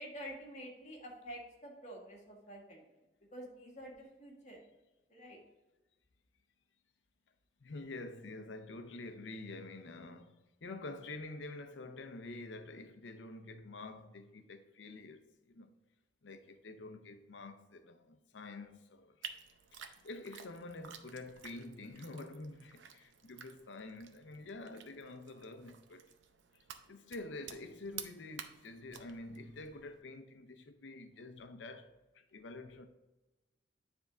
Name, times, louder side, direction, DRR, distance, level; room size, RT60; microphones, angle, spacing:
voice 1, 0.0-2.8 3.3-4.6 5.1-5.4, equal, 40° left, 1.6 m, -48 dB
voice 2, 7.6-15.7 16.2-19.4 19.7-26.1 26.9-32.9, left 2 dB, 75° left, 0.7 m, -48 dB
sound 1, 19.2-30.0, right 8 dB, 80° right, 0.6 m, -52 dB
9.6 x 3.6 x 3.8 m
head